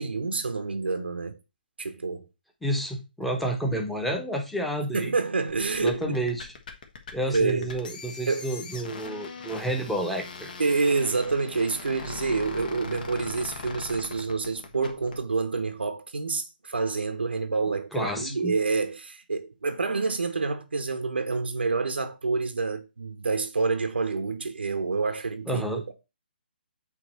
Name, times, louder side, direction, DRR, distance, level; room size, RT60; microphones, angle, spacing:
voice 1, 0.0-1.4 1.8-2.2 4.9-6.2 7.3-7.7 8.3-8.5 10.6-25.9, right 4 dB, 85° right, 0.9 m, -28 dB
voice 2, 2.6-5.1 5.8-6.5 7.1-10.5 17.9-18.6 25.5-25.8, right 1 dB, ahead, 1.1 m, -30 dB
sound 1, 5.5-15.2, left 5 dB, 55° left, 1.4 m, -41 dB
8.4 x 3.1 x 4.4 m
hypercardioid pair, 145°, 6 cm